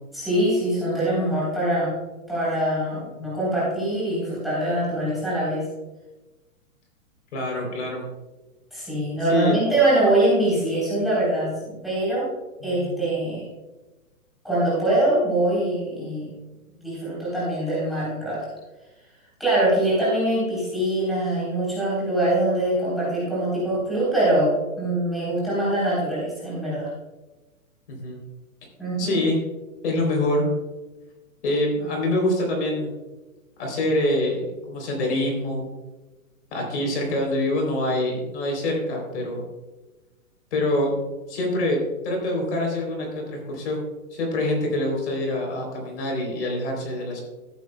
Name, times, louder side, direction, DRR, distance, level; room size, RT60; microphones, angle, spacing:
voice 1, 0.1-1.9 2.3-5.6 8.7-12.3 12.6-13.4 14.4-16.3 16.8-18.5 19.4-26.9 28.8-29.2, right 1 dB, ahead, -9 dB, 3.5 m, -23 dB
voice 2, 7.3-8.0 9.3-9.5 12.6-12.9 27.9-28.2 29.0-29.4 29.8-30.5 31.4-32.9 33.6-35.6 36.5-39.4 40.5-40.9 41.3-47.2, left 1 dB, 50° left, 1 dB, 3.4 m, -25 dB
14.0 x 10.0 x 2.2 m, 1.1 s
hypercardioid pair, 170°, 43 cm